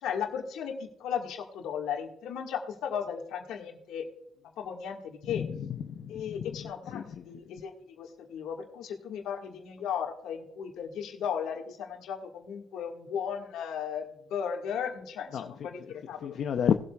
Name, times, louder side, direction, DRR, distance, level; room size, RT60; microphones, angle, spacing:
voice 1, 0.0-4.1 4.6-5.4 6.1-16.4, left 7 dB, 85° left, 2 dB, 1.7 m, -36 dB
voice 2, 5.2-7.2 15.3-16.7, left 8 dB, 65° left, 6 dB, 0.6 m, -32 dB
19.0 x 7.8 x 2.3 m, 0.79 s
cardioid pair, 90°, 0 cm